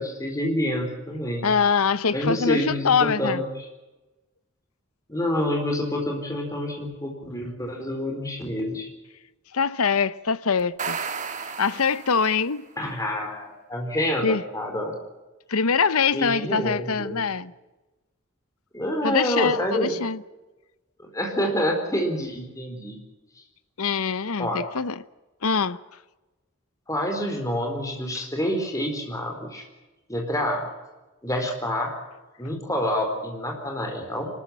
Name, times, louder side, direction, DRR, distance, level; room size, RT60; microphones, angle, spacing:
voice 1, 0.0-1.5 2.1-3.7 5.1-8.9 12.8-14.9 16.1-17.2 18.7-20.0 21.0-23.0 24.4-24.6 26.9-29.6 30.1-30.6 31.2-31.9 32.4-34.3, left 1 dB, 15° left, 4.2 m, -27 dB
voice 2, 1.4-3.4 9.5-11.0 11.6-12.7 14.2-14.4 15.5-17.5 19.0-20.2 23.8-25.1 25.4-25.8, left 5 dB, 85° left, 0.9 m, -23 dB
sound 1, 10.6-12.6, right 5 dB, 35° right, 1.5 m, -33 dB
25.5 x 13.5 x 10.0 m
head